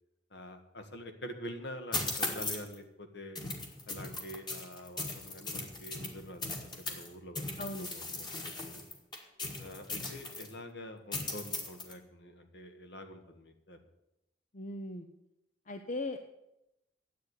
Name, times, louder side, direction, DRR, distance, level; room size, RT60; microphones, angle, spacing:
voice 1, 0.3-3.4 3.9-8.8 9.6-13.8, equal, 65° left, 6 dB, 1.7 m, -46 dB
sound 1, 1.9-2.7 3.3-7.1 7.3-10.5 11.1-11.9, left 3 dB, 25° left, 1.8 m, -38 dB
voice 2, 7.6-7.9 14.5-15.1 15.7-16.2, left 2 dB, 45° left, 7 dB, 0.7 m, -38 dB
10.5 x 8.3 x 9.7 m, 0.88 s
head